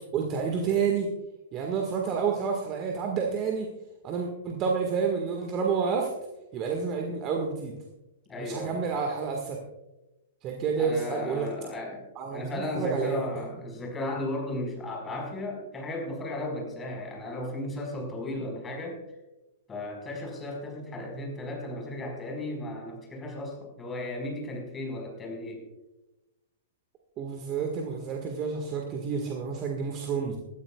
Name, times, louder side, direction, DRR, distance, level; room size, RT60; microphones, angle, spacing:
voice 1, 0.1-1.1 1.5-3.7 4.0-6.1 6.5-7.7 8.4-9.6 10.4-11.5 12.2-13.2 27.2-30.4, right 6 dB, 30° right, 2 dB, 1.7 m, -29 dB
voice 2, 8.3-8.9 10.8-19.0 19.7-25.6, left 1 dB, 15° left, 1 dB, 4.9 m, -35 dB
20.5 x 13.5 x 2.4 m, 1.0 s
figure-of-eight pair, 110°, 0 cm